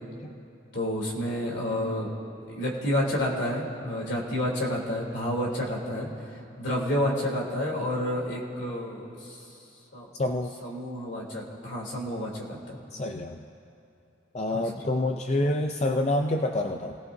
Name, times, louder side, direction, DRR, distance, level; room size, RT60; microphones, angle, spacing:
voice 1, 0.7-2.1 2.5-6.1 6.6-9.4 9.9-10.1 10.6-12.8 14.5-14.7, left 1 dB, 65° left, -3 dB, 3.2 m, -30 dB
voice 2, 10.2-10.5 12.9-13.4 14.3-17.0, left 1 dB, 35° left, 4 dB, 0.4 m, -27 dB
29.0 x 18.0 x 2.7 m, 2.8 s
head